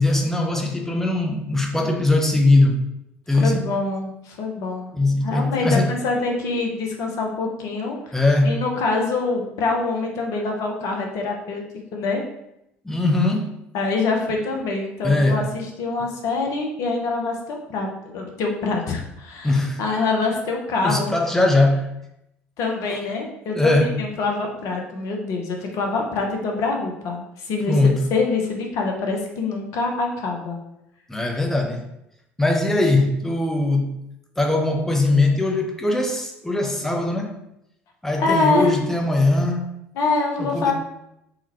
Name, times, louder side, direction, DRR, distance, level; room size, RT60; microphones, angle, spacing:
voice 1, 0.0-2.8 3.3-3.6 4.9-5.9 8.1-8.6 12.8-13.6 15.0-15.5 19.4-19.8 20.8-21.9 23.5-24.0 27.6-28.1 31.1-31.9 32.4-33.9 34.4-37.4 38.0-39.7 40.4-40.7, left 2 dB, 5° left, 2 dB, 0.5 m, -20 dB
voice 2, 3.3-4.9 5.2-8.0 8.4-11.6 11.9-12.2 13.7-21.1 22.6-27.7 28.1-30.6 38.2-38.7 40.0-40.7, left 3 dB, 50° left, 1 dB, 0.6 m, -25 dB
3.7 x 2.2 x 2.8 m, 0.81 s
figure-of-eight pair, 60°, 7 cm